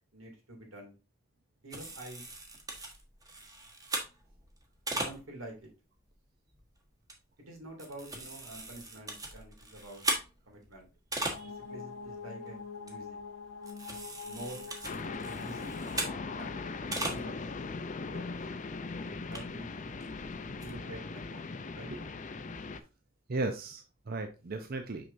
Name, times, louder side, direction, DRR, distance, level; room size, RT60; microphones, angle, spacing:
voice 1, 0.1-0.9 1.6-2.2 4.9-5.7 7.4-10.0 10.5-10.9 11.3-13.2 14.3-14.7 15.2-15.7 16.4-16.6 17.0-17.4 18.1-18.3 19.3-19.7 20.5-21.9, right 1 dB, 85° right, 1 dB, 2.6 m, -47 dB
sound 1, 1.7-5.5 6.1-6.2 6.5-6.7 7.1-7.2 7.5-11.7 12.0-12.2 12.5-12.6 12.9-13.2 13.6-16.4 16.7-17.2 17.6-17.7 18.1-18.2 18.5-18.6 19.1-20.7, right 1 dB, 20° right, 1.3 m, -39 dB
sound 2, 11.3-18.2, left 5 dB, 80° left, 1.0 m, -46 dB
sound 3, 14.8-22.8, left 3 dB, 40° left, 0.5 m, -39 dB
voice 2, 23.3-25.1, right 2 dB, 50° right, 6 dB, 0.6 m, -36 dB
6.2 x 6.0 x 2.6 m, 0.31 s
head